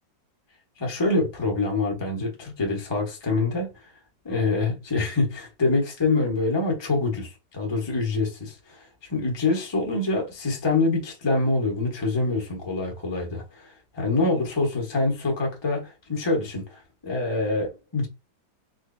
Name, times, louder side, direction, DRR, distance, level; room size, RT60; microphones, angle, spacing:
voice 1, 0.8-3.7 4.2-18.1, left 3 dB, 20° left, 0.9 m, -25 dB
3.8 x 3.2 x 2.6 m
omnidirectional pair, 1.9 m